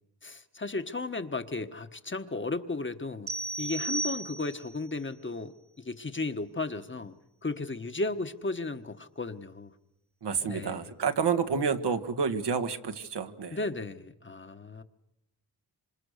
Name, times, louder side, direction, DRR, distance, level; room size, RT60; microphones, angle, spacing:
voice 1, 0.2-3.3 3.6-7.1 7.4-9.7 10.5-10.9 13.5-14.8, left 3 dB, 30° left, 9 dB, 1.4 m, -35 dB
sound 1, 3.3-4.8, right 2 dB, 35° right, 1.0 m, -34 dB
voice 2, 10.2-13.6, right 6 dB, 80° right, 7 dB, 1.8 m, -29 dB
27.0 x 26.5 x 6.6 m, 0.86 s
wide cardioid pair, 85°, 40 cm